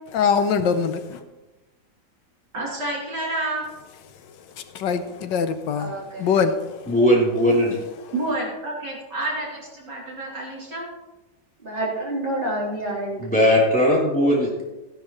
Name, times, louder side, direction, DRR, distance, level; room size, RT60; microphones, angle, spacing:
voice 1, 0.1-1.2 4.3-6.9 8.0-8.1, left 6 dB, 80° left, 1.4 m, -24 dB
voice 2, 2.5-3.6 8.1-10.9, right 2 dB, 70° right, 3.7 m, -29 dB
voice 3, 5.8-6.3 11.6-13.3, right 1 dB, 25° right, 4.1 m, -28 dB
voice 4, 6.9-7.8 13.2-14.5, equal, 5° left, 3.2 m, -18 dB
15.0 x 11.0 x 3.1 m
omnidirectional pair, 1.9 m